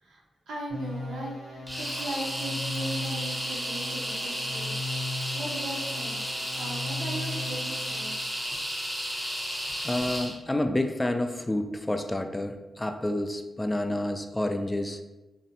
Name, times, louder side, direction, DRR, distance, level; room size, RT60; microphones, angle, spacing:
voice 1, 0.0-4.7 5.3-6.2 6.5-8.1, right 2 dB, 80° right, -3 dB, 0.6 m, -38 dB
sound 1, 0.7-8.3, left 2 dB, 80° left, 0.8 m, -37 dB
sound 2, 1.7-10.4, equal, 5° right, 0.8 m, -33 dB
voice 2, 9.8-15.0, left 1 dB, 20° left, 6 dB, 0.3 m, -29 dB
2.6 x 2.0 x 2.7 m, 1.1 s
supercardioid pair, 40°, 0 cm